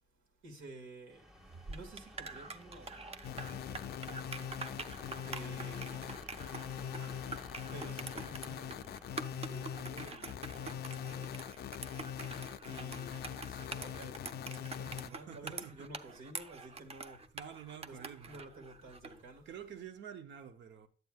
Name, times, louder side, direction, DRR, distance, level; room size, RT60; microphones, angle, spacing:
voice 1, 0.4-1.3 1.6-4.6 5.2-6.3 7.7-8.9 9.4-11.4 12.6-17.3 17.8-19.9, right 2 dB, 80° right, 1.9 m, -52 dB
sound 1, 1.1-12.7, left 1 dB, ahead, 0.9 m, -55 dB
sound 2, 1.4-19.2, right 4 dB, 30° right, 0.5 m, -46 dB
sound 3, 3.2-15.1, left 9 dB, 55° left, 0.4 m, -42 dB
voice 2, 15.3-15.9 17.3-18.4 19.5-20.9, right 8 dB, 65° right, 0.8 m, -48 dB
9.1 x 8.0 x 2.4 m
cardioid pair, 90°, 20 cm